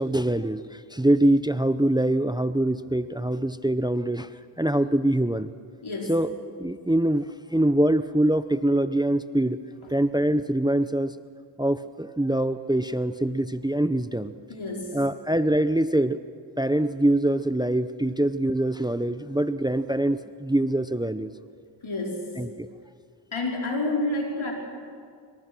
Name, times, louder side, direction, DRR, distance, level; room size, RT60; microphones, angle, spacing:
voice 1, 0.0-4.3 4.6-5.5 6.1-9.6 9.9-11.1 11.6-14.3 14.9-16.2 16.6-21.3 22.4-22.7, right 1 dB, 10° right, 13 dB, 0.8 m, -24 dB
voice 2, 5.8-6.2 14.5-15.0 21.8-22.3 23.3-24.5, left 2 dB, 75° left, -1 dB, 5.1 m, -29 dB
25.5 x 25.0 x 6.2 m, 2.1 s
cardioid pair, 40°, 48 cm